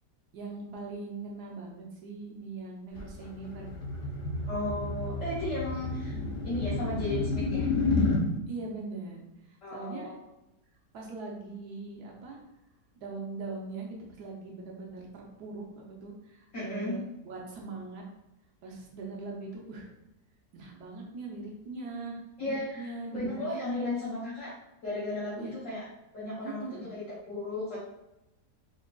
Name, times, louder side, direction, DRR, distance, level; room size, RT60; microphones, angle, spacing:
voice 1, 0.3-3.7 5.8-6.4 8.5-10.1 10.9-12.4 13.0-18.0 18.6-19.9 20.5-23.6 25.4-25.5 26.4-26.9, right 3 dB, 80° right, -1 dB, 1.2 m, -41 dB
sound 1, 3.0-8.2, left 3 dB, 80° left, 1.2 m, -30 dB
voice 2, 4.5-6.2 6.4-7.7 9.6-10.2 16.5-17.0 22.4-24.5 24.8-25.8 26.1-27.8, left 2 dB, 55° left, -9 dB, 1.1 m, -35 dB
3.8 x 3.2 x 2.2 m, 0.92 s
omnidirectional pair, 1.7 m